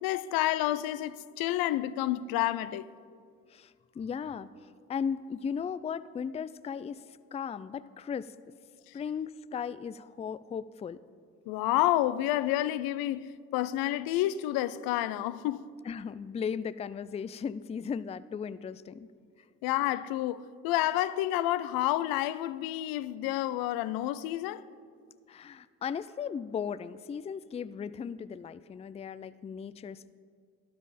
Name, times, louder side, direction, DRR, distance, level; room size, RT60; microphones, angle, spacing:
voice 1, 0.0-2.9 11.5-15.7 19.6-24.6, left 14 dB, 80° left, 0.5 m, -29 dB
voice 2, 3.5-8.3 8.9-11.0 15.8-19.1 25.3-30.1, left 7 dB, 20° left, 0.3 m, -37 dB
12.5 x 11.5 x 4.2 m
supercardioid pair, 60°, 35 cm